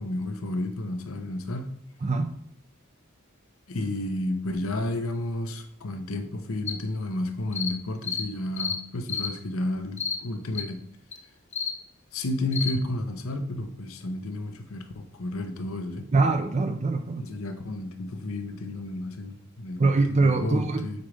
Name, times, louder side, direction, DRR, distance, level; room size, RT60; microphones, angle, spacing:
voice 1, 0.0-1.8 3.7-10.8 12.1-16.1 17.2-19.8 20.1-21.0, left 1 dB, 80° left, 0.8 m, -32 dB
voice 2, 2.0-2.3 16.1-17.3 19.8-21.1, right 3 dB, 30° right, 0.5 m, -23 dB
sound 1, 6.7-6.8 7.5-7.7 8.0-8.3 8.6-8.8 9.1-9.3 10.0-10.2 10.5-10.6 11.1-11.2 11.5-11.7 12.5-12.7, left 6 dB, 35° left, 0.6 m, -30 dB
8.1 x 5.0 x 3.3 m
head